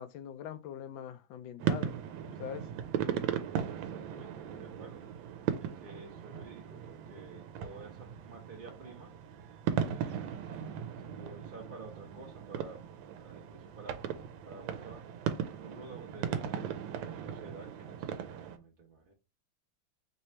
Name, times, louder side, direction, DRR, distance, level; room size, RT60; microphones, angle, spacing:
voice 1, 0.0-2.0 2.3-2.7, left 9 dB, 80° left, 1.3 m, -42 dB
sound 1, 1.6-18.6, right 8 dB, 85° right, 1.4 m, -37 dB
voice 2, 3.7-5.0 5.6-9.1 9.7-12.8 13.2-14.0 14.4-15.1 15.4-16.7 17.1-19.1, right 3 dB, 45° right, 0.7 m, -51 dB
3.3 x 3.0 x 4.3 m
omnidirectional pair, 2.1 m